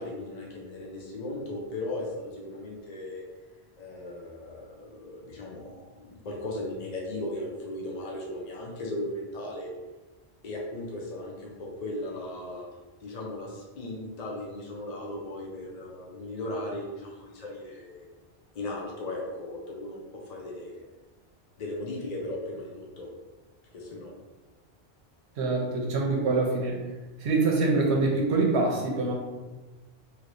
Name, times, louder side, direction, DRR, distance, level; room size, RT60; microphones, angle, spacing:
voice 1, 0.0-3.2 3.8-9.7 10.4-12.7 13.0-18.1 18.5-20.8 21.6-23.1 23.7-24.1, left 1 dB, 50° left, -2 dB, 0.6 m, -37 dB
voice 2, 25.4-26.8 27.2-29.1, right 3 dB, 85° right, 0 dB, 0.9 m, -25 dB
3.1 x 2.9 x 2.6 m, 1.2 s
omnidirectional pair, 1.1 m